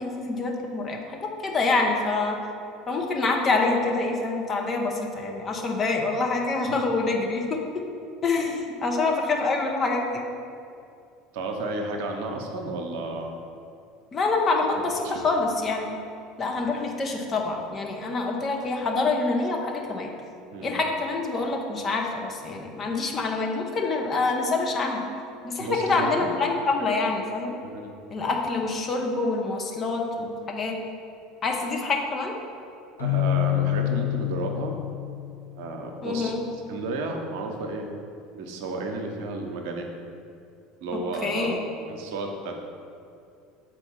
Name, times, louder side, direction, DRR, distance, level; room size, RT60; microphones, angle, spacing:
voice 1, 0.0-2.4 2.9-7.6 8.2-10.2 14.1-16.0 16.4-20.1 20.6-25.0 25.4-27.6 28.1-30.8 31.4-32.3 36.0-36.4 41.2-41.6, left 3 dB, 35° left, 1 dB, 1.0 m, -26 dB
voice 2, 11.3-13.4 15.0-15.2 20.5-20.8 25.6-26.3 27.6-27.9 33.0-34.8 35.5-36.3 36.7-37.9 38.3-39.9 40.8-41.6 41.9-42.6, right 2 dB, 65° right, 3 dB, 0.8 m, -32 dB
Keyboard (musical), 33.0-35.9, left 17 dB, 85° left, 0.6 m, -27 dB
6.8 x 4.3 x 4.6 m, 2.5 s
hypercardioid pair, 70°, 0 cm